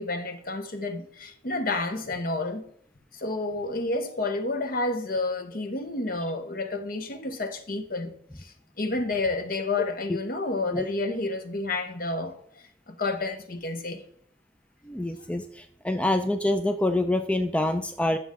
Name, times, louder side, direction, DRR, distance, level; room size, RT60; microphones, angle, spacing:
voice 1, 0.0-2.7 3.1-8.1 8.4-12.3 12.9-14.0, left 2 dB, 55° left, 0.9 m, -30 dB
voice 2, 14.8-18.2, left 1 dB, 5° left, 0.4 m, -26 dB
11.5 x 6.9 x 3.6 m
head